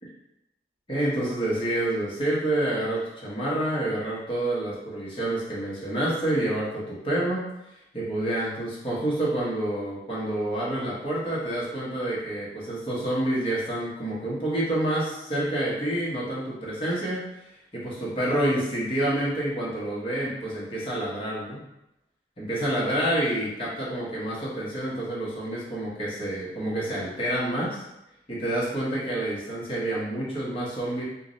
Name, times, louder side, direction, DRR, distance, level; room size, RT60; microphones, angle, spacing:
voice 1, 0.9-7.5 7.9-17.3 17.7-21.6 22.4-27.8 28.3-31.0, right 1 dB, 30° left, -6 dB, 1.1 m, -28 dB
3.1 x 2.5 x 3.9 m, 0.88 s
head